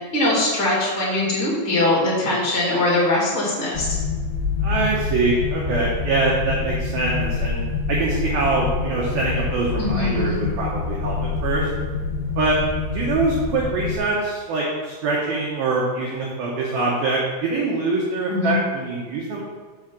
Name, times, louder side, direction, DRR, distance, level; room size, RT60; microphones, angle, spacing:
voice 1, 0.1-3.9 9.8-10.4 18.3-18.6, left 2 dB, 30° left, -5 dB, 2.3 m, -21 dB
sound 1, 3.7-14.0, left 4 dB, 75° left, 3.1 m, -26 dB
voice 2, 4.6-7.6 7.9-11.7 12.4-12.6 12.9-19.4, right 3 dB, 85° right, -4 dB, 2.1 m, -24 dB
7.1 x 5.1 x 7.3 m, 1.4 s
omnidirectional pair, 6.0 m